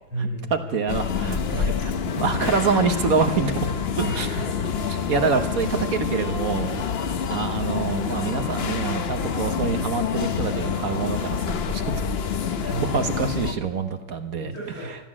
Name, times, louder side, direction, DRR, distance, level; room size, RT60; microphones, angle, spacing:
voice 1, 0.1-0.7 4.0-4.7 12.7-13.4 14.4-14.9, right 1 dB, 80° left, -7 dB, 8.2 m, -33 dB
voice 2, 0.7-3.7 3.9-4.3 5.1-6.9 7.3-11.8 12.6-14.5, right 5 dB, 55° right, 7 dB, 1.5 m, -26 dB
sound 1, 0.9-13.5, left 6 dB, 55° left, 0.7 m, -27 dB
15.0 x 12.0 x 7.4 m, 1.1 s
omnidirectional pair, 2.0 m